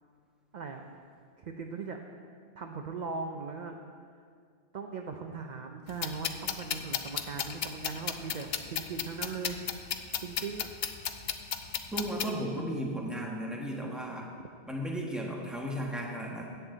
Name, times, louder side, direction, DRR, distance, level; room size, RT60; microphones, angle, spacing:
voice 1, 1.4-2.0 2.6-3.8 4.7-9.6 10.2-10.7 14.4-14.5, right 4 dB, 50° right, 4 dB, 0.7 m, -39 dB
sound 1, 5.9-12.3, left 8 dB, 65° left, 0.8 m, -35 dB
voice 2, 11.9-14.3 14.7-16.4, equal, ahead, -2 dB, 1.3 m, -35 dB
14.5 x 8.1 x 3.9 m, 2.1 s
omnidirectional pair, 1.2 m